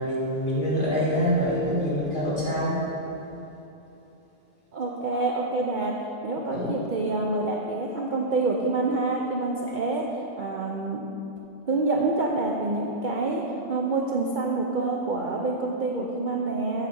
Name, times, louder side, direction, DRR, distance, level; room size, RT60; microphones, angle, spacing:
voice 1, 0.0-2.9 6.5-6.8, equal, 30° left, -8 dB, 2.3 m, -25 dB
voice 2, 4.7-6.0 6.2-10.1 10.4-11.0 11.7-13.4 13.7-16.9, right 3 dB, 65° right, -1 dB, 0.5 m, -27 dB
8.0 x 4.9 x 7.2 m, 2.9 s
omnidirectional pair, 1.7 m